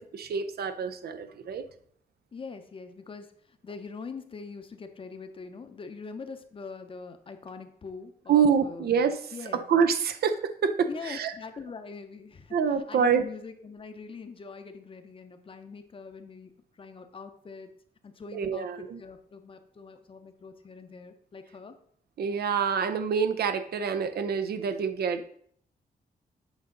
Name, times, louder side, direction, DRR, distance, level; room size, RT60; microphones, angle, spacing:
voice 1, 0.0-1.6 8.3-11.3 12.5-13.2 18.3-19.0 22.2-25.3, right 6 dB, 80° right, 8 dB, 0.6 m, -26 dB
voice 2, 2.3-8.9 9.3-9.6 10.9-12.6 12.9-17.7 18.0-18.7 19.0-21.8, left 4 dB, 35° left, 8 dB, 0.7 m, -43 dB
8.2 x 5.1 x 3.8 m, 0.63 s
wide cardioid pair, 175°, 16 cm